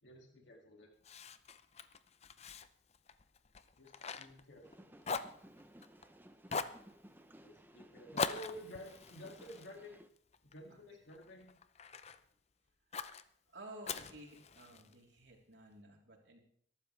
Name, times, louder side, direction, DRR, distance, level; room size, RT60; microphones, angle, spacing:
voice 1, 0.0-0.9 3.8-4.9 7.4-10.0 10.4-11.5 14.7-14.8, equal, 75° left, 1 dB, 2.4 m, -52 dB
Fire, 1.0-4.8 5.0-6.1 6.5-6.8 8.2-10.6 11.1-12.2 12.9-13.2 13.8-14.9, left 5 dB, 35° left, 0.6 m, -42 dB
sound 1, 4.6-10.1, right 1 dB, 10° right, 0.7 m, -59 dB
voice 2, 13.5-16.4, right 1 dB, 75° right, 0 dB, 3.6 m, -54 dB
22.0 x 12.5 x 3.3 m, 0.62 s
head